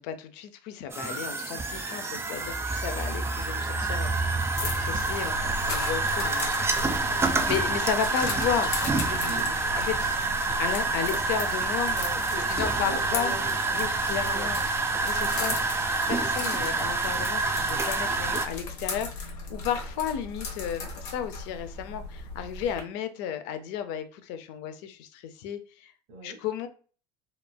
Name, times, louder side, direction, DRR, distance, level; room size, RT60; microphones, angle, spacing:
voice 1, 0.0-6.6 7.5-9.4 9.7-10.2 10.6-12.0 12.5-13.3 13.7-14.6 15.0-15.6 16.1-25.9 26.2-26.7, left 9 dB, 65° left, 0.5 m, -33 dB
sound 1, 0.9-18.5, right 3 dB, 15° right, 0.3 m, -28 dB
sound 2, 4.6-22.8, left 3 dB, 80° left, 0.8 m, -37 dB
voice 2, 7.0-7.5 9.3-9.5 11.9-14.6 15.1-15.4 26.1-26.4, right 1 dB, 55° right, 1.0 m, -40 dB
3.0 x 2.1 x 2.2 m
hypercardioid pair, 85°, 20 cm